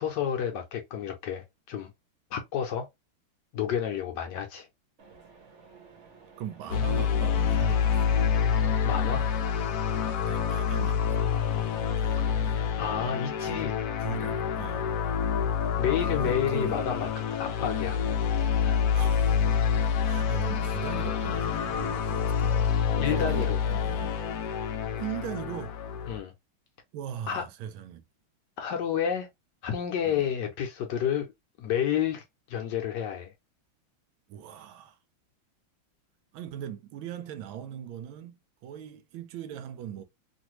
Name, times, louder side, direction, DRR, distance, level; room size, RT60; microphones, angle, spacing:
voice 1, 0.0-1.9 2.3-2.9 3.5-4.7 8.8-9.2 12.2-12.3 12.8-13.7 15.8-17.1 17.4-18.0 18.6-19.0 23.0-23.6 26.1-26.3 27.3-27.4 28.6-29.3 29.6-31.3 31.6-33.3, left 8 dB, 70° left, 1.1 m, -30 dB
Mechanisms, 5.0-23.5, right 4 dB, 50° right, 0.9 m, -51 dB
voice 2, 6.4-8.2 10.3-11.2 11.8-12.7 13.4-13.7 14.0-15.2 16.0-16.9 18.9-19.4 19.9-22.7 23.1-24.1 24.6-25.8 26.9-28.0 30.0-30.3 34.3-35.0 36.3-40.0, right 10 dB, 80° right, 1.3 m, -40 dB
sound 1, 6.7-26.2, left 7 dB, 90° left, 0.8 m, -27 dB
3.1 x 2.6 x 2.9 m
omnidirectional pair, 2.2 m